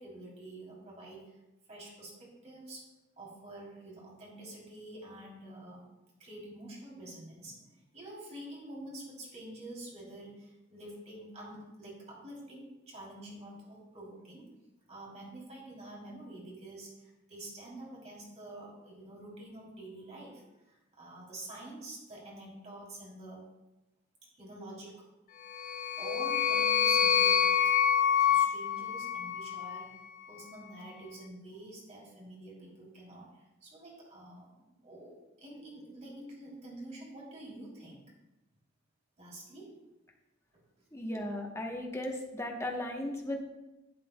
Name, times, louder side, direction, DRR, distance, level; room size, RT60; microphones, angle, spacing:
voice 1, 0.0-1.3 1.7-2.9 3.2-5.8 6.2-14.5 14.9-23.4 24.3-25.0 26.0-27.8 28.2-30.0 30.3-38.0 39.2-39.8, right 1 dB, 35° right, -4 dB, 3.1 m, -47 dB
sound 1, 25.5-29.9, left 8 dB, 40° left, 0.3 m, -27 dB
voice 2, 40.9-43.5, left 1 dB, 15° left, 1 dB, 1.0 m, -36 dB
11.5 x 7.5 x 2.2 m, 1.0 s
head